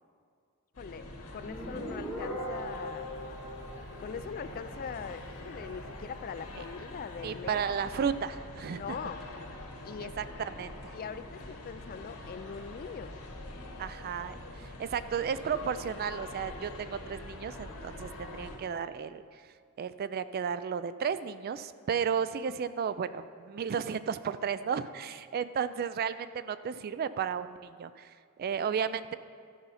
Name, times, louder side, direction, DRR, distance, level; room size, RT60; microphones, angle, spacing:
sound 1, 0.7-18.6, left 1 dB, 90° left, 1.7 m, -44 dB
voice 1, 0.8-3.1 4.0-7.6 8.7-9.2 9.8-10.2 10.9-13.1, left 6 dB, 40° left, 12 dB, 0.3 m, -41 dB
Guitar, 1.5-4.9, equal, 10° right, 2.0 m, -41 dB
voice 2, 7.2-9.0 10.0-10.9 13.8-19.2 19.8-28.1 28.4-29.2, right 7 dB, 45° right, 14 dB, 0.3 m, -33 dB
13.0 x 5.4 x 5.6 m, 2.2 s
head